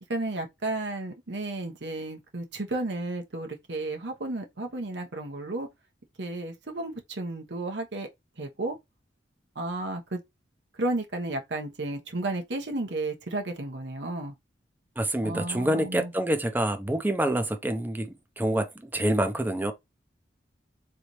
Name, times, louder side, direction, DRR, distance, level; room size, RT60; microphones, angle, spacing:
voice 1, 0.1-5.7 6.2-8.1 8.4-8.8 9.5-10.2 10.7-14.3 15.2-16.1, right 2 dB, 70° right, 1.1 m, -33 dB
voice 2, 15.0-19.7, right 1 dB, 10° right, 0.6 m, -27 dB
4.1 x 3.3 x 3.1 m
head